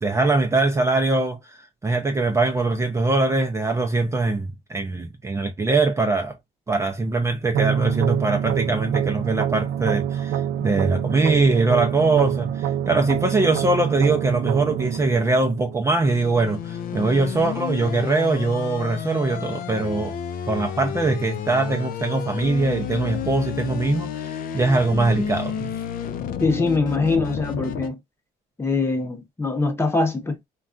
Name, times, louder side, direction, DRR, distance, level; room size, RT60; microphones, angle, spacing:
voice 1, 0.0-6.3 6.7-20.2 20.5-25.7, right 3 dB, 15° right, 0.5 m, -22 dB
sound 1, 7.5-16.5, right 10 dB, 75° right, 0.4 m, -26 dB
sound 2, 16.0-27.9, left 8 dB, 55° left, 0.5 m, -31 dB
voice 2, 26.4-28.0 28.6-30.5, left 3 dB, 15° left, 0.8 m, -23 dB
3.3 x 2.3 x 2.4 m
cardioid pair, 110°, 17 cm